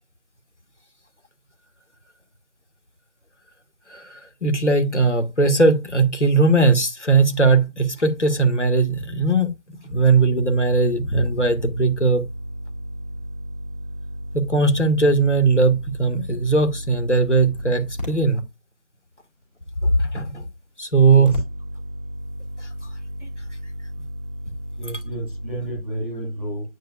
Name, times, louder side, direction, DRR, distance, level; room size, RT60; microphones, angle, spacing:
voice 1, 3.9-9.5 9.8-12.2 14.3-18.4 20.0-20.4 20.8-21.4 22.6-22.7, right 3 dB, 65° left, 1.8 m, -19 dB
sound 1, 10.0-18.2 21.1-25.8, equal, 35° left, 2.8 m, -33 dB
voice 2, 24.8-26.6, right 1 dB, 10° right, 2.4 m, -31 dB
8.9 x 4.6 x 2.4 m
figure-of-eight pair, 170°, 39 cm